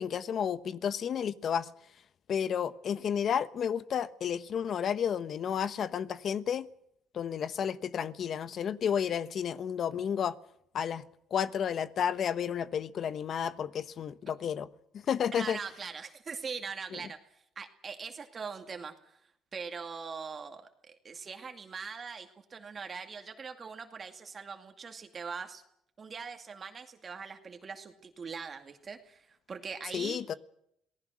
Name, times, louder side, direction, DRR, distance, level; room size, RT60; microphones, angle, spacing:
voice 1, 0.0-1.7 2.3-6.7 7.1-10.4 10.7-11.0 11.3-14.7 14.9-15.6 16.9-17.0 29.9-30.3, left 8 dB, 55° left, 14 dB, 1.1 m, -31 dB
voice 2, 15.3-17.2 17.6-19.2 19.5-25.6 26.0-30.2, right 5 dB, 35° right, 5 dB, 2.3 m, -42 dB
27.0 x 18.5 x 6.4 m, 0.74 s
cardioid pair, 100°, 0 cm